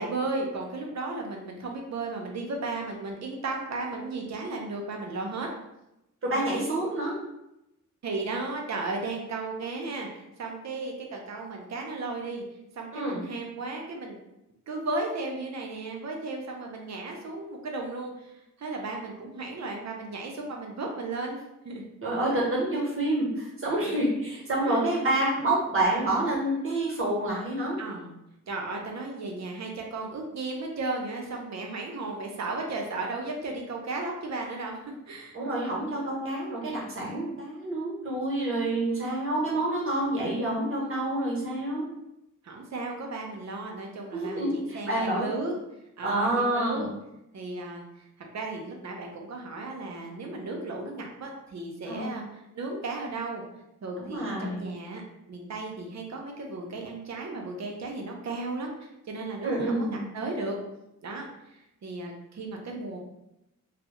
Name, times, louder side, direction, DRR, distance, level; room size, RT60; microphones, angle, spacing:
voice 1, 0.0-5.5 8.0-10.1 10.4-12.4 12.7-14.2 14.7-21.4 21.6-21.9 24.6-24.9 27.8-28.1 28.5-35.4 40.8-41.0 42.4-45.6 46.0-46.9 47.3-47.9 48.3-53.4 53.8-55.0 55.3-58.7 59.1-60.6 61.0-61.2 61.8-63.0, right 3 dB, 60° right, 1 dB, 0.6 m, -35 dB
voice 2, 6.2-7.2 12.9-13.2 22.0-27.8 35.3-41.9 44.1-45.3 46.0-46.9 51.9-52.2 54.0-54.7 59.4-60.0, right 1 dB, 45° right, -4 dB, 0.9 m, -28 dB
2.3 x 2.0 x 2.8 m, 0.88 s
wide cardioid pair, 95°, 31 cm